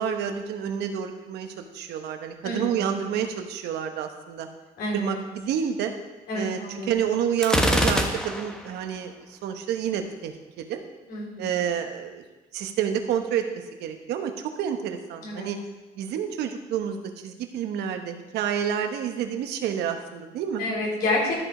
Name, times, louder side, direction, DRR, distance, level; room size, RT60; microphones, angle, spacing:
voice 1, 0.0-4.5 4.9-5.9 6.3-10.8 11.4-12.2 12.5-13.5 13.8-14.3 14.6-15.6 16.0-20.6, right 8 dB, 80° right, 6 dB, 1.1 m, -29 dB
voice 2, 2.4-2.9 4.8-5.2 6.3-6.9 11.1-11.5 15.2-15.5 20.6-21.4, left 2 dB, 65° left, -3 dB, 3.8 m, -29 dB
Gunshot gunfire, 7.4-8.7, equal, 5° left, 1.0 m, -23 dB
13.5 x 5.1 x 4.9 m, 1.1 s
cardioid pair, 110°, 17 cm